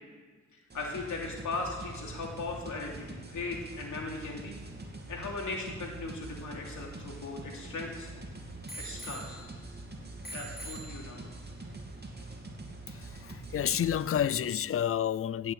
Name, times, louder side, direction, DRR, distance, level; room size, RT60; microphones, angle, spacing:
voice 1, 0.5-4.6 5.1-8.3 8.8-9.4 10.3-11.2, left 3 dB, 80° left, 3.0 m, -38 dB
sound 1, 0.7-14.2, right 2 dB, 35° right, 2.7 m, -44 dB
Bicycle bell, 6.4-8.0 8.7-9.8 10.2-11.5 12.2-12.3, right 2 dB, 35° left, 2.5 m, -46 dB
voice 2, 13.5-15.5, left 9 dB, 50° left, 0.5 m, -29 dB
16.5 x 6.5 x 8.1 m
cardioid pair, 65°, 29 cm